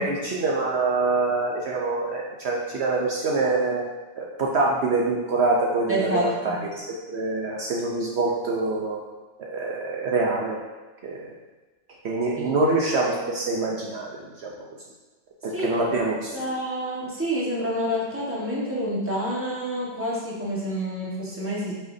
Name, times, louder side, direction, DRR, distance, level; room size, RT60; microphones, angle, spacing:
voice 1, 0.0-3.9 4.2-9.0 9.4-10.6 11.0-11.3 12.0-14.5 15.4-16.3, right 3 dB, 80° right, -3 dB, 0.5 m, -25 dB
voice 2, 5.9-6.6 12.4-12.7 15.5-15.9 16.3-21.7, equal, 5° right, -6 dB, 1.3 m, -28 dB
8.3 x 5.7 x 2.7 m, 1.2 s
omnidirectional pair, 2.2 m